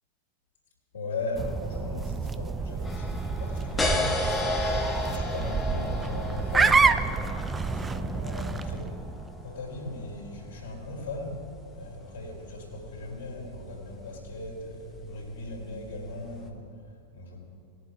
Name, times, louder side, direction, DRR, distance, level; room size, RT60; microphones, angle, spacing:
voice 1, 0.9-4.2 4.8-8.9 9.4-11.4 11.7-17.4, left 2 dB, 70° left, -6 dB, 3.2 m, -38 dB
sound 1, 1.4-9.4, right 4 dB, 15° right, 0.4 m, -28 dB
sound 2, 2.8-16.5, left 2 dB, 10° left, 1.3 m, -35 dB
19.5 x 7.4 x 4.5 m, 2.4 s
figure-of-eight pair, 90°, 0 cm